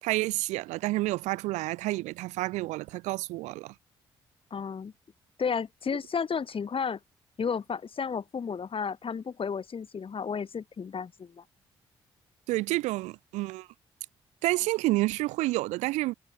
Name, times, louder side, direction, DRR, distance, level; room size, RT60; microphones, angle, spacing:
voice 1, 0.0-3.7 12.5-13.7 14.4-16.1, right 19 dB, 75° right, 1.5 m, -29 dB
voice 2, 4.5-4.9 5.4-7.0 7.4-11.4, left 6 dB, 50° left, 7.1 m, -32 dB
hypercardioid pair, 45°, 12 cm